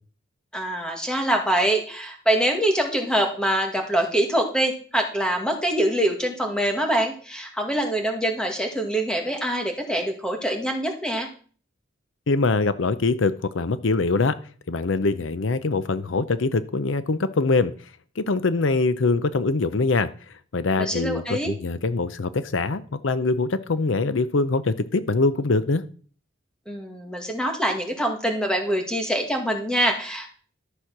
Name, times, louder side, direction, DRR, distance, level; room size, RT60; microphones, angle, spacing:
voice 1, 0.5-11.3 20.8-21.5 26.7-30.3, right 1 dB, 5° left, 2.0 m, -24 dB
voice 2, 12.3-14.4 14.7-17.7 18.2-25.8, left 3 dB, 75° left, 0.7 m, -23 dB
13.0 x 6.4 x 5.9 m
head